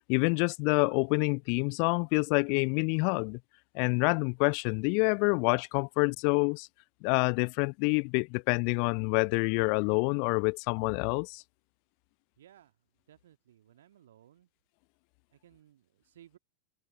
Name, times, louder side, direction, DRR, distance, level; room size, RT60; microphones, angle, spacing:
voice 1, 0.0-3.4 3.7-6.7 7.0-11.4, left 40 dB or more, 45° left, 0.4 m, -27 dB
voice 2, 12.4-12.7 13.1-14.5 15.3-16.4, right 11 dB, 60° right, 1.9 m, -59 dB
open air
figure-of-eight pair, 90°, 0 cm